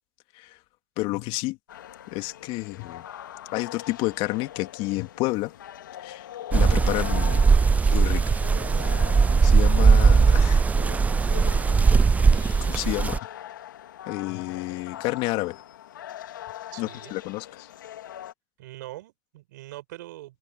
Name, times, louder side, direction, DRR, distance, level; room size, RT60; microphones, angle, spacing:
voice 1, 1.0-1.6 2.1-3.0 3.5-5.5 6.0-7.4 7.9-8.2 9.4-10.7 12.7-13.2 14.1-15.6 16.8-17.7, left 21 dB, 55° left, 2.4 m, -30 dB
sound 1, 1.7-18.3, left 12 dB, 85° left, 2.2 m, -41 dB
sound 2, 6.5-13.2, right 5 dB, 15° right, 0.3 m, -19 dB
voice 2, 16.7-17.2 18.6-20.4, right 17 dB, 75° right, 6.2 m, -42 dB
hypercardioid pair, 95°, 10 cm